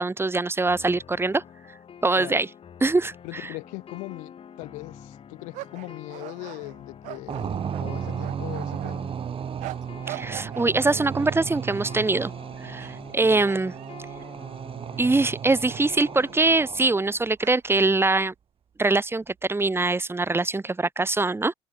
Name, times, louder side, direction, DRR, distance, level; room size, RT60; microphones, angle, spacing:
voice 1, 0.0-1.4 2.0-2.5 2.8-3.1 10.1-12.3 12.6-13.7 15.0-18.3 18.8-21.5, right 3 dB, 20° right, 2.0 m, -23 dB
sound 1, 0.6-16.6, left 8 dB, 45° left, 4.8 m, -47 dB
voice 2, 3.2-9.1 13.2-13.5, left 28 dB, 75° left, 1.6 m, -40 dB
sound 2, 5.5-8.9 9.6-10.7 11.2-12.0 12.6-13.1 13.4-15.0 15.5-15.6 16.2-16.3 17.4-17.9, right 19 dB, 70° right, 1.8 m, -42 dB
sound 3, 7.3-17.2, right 8 dB, 45° right, 1.8 m, -34 dB
hypercardioid pair, 60°, 13 cm